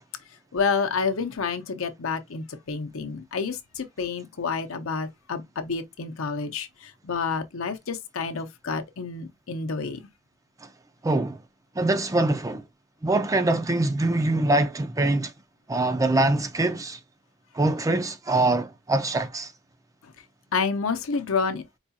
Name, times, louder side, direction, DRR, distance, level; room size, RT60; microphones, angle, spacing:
voice 1, 0.5-10.0 20.5-21.8, left 5 dB, 70° left, 0.7 m, -29 dB
voice 2, 11.0-11.4 11.8-12.6 13.0-15.3 15.7-17.0 17.5-19.5, right 2 dB, 15° right, 0.4 m, -23 dB
4.7 x 2.3 x 2.7 m
head